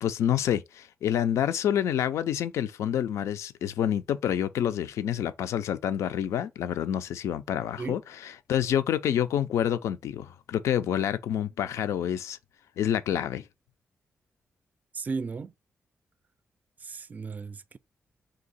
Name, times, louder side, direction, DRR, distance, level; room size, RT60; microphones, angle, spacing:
voice 1, 0.0-12.4 12.8-13.4, left 10 dB, 90° left, 0.4 m, -28 dB
voice 2, 14.9-15.5 16.8-17.8, right 4 dB, 35° right, 0.4 m, -35 dB
3.8 x 2.8 x 4.0 m
cardioid pair, 85°, 5 cm